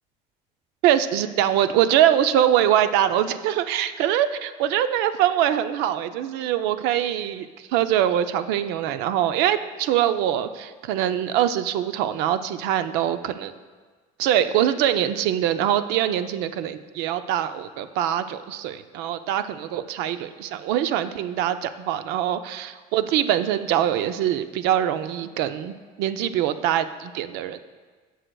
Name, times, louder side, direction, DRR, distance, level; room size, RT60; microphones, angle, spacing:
voice 1, 0.8-13.5 14.2-27.6, right 11 dB, 85° right, 11 dB, 0.5 m, -23 dB
17.5 x 6.3 x 2.3 m, 1.4 s
cardioid pair, 135°, 17 cm